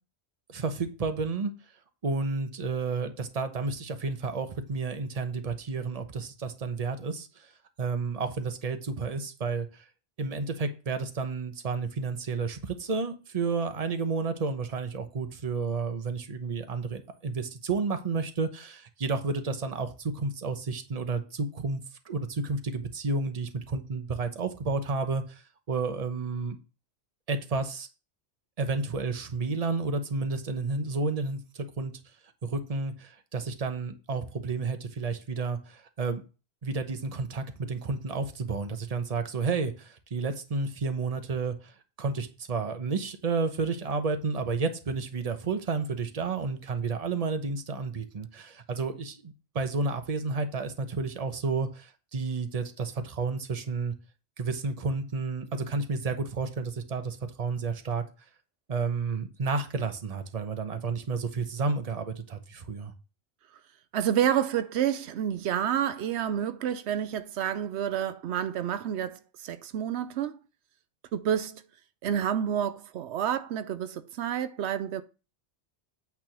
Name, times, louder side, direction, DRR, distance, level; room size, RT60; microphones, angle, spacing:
voice 1, 0.5-1.5 2.0-7.5 7.8-9.8 10.2-21.8 22.0-26.6 27.3-27.9 28.6-31.9 32.4-36.2 36.6-41.7 42.0-53.9 54.4-58.0 58.7-62.9, right 4 dB, 40° right, 0.9 m, -31 dB
voice 2, 63.9-70.4 71.1-71.6 72.0-75.0, right 9 dB, 85° right, 0.9 m, -29 dB
8.8 x 3.6 x 6.0 m
omnidirectional pair, 1.1 m